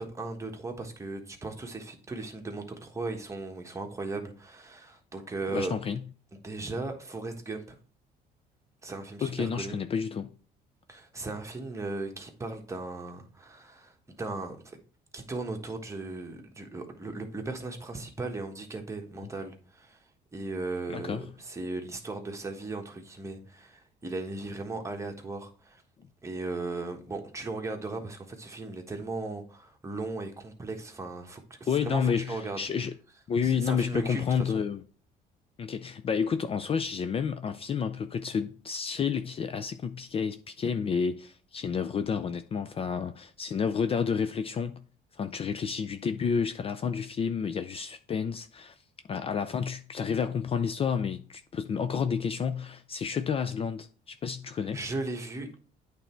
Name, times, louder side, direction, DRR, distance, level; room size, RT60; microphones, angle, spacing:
voice 1, 0.0-5.7 6.4-7.7 8.8-9.8 10.9-14.8 15.1-20.0 20.3-25.8 26.2-32.6 33.4-34.6 54.7-55.6, right 3 dB, 15° right, 1.2 m, -37 dB
voice 2, 5.5-6.0 9.2-10.3 20.9-21.2 31.7-32.9 33.3-34.8 35.6-44.8 45.1-48.7 49.1-54.8, left 6 dB, 35° left, 0.4 m, -30 dB
8.8 x 3.4 x 4.4 m
cardioid pair, 110°, 17 cm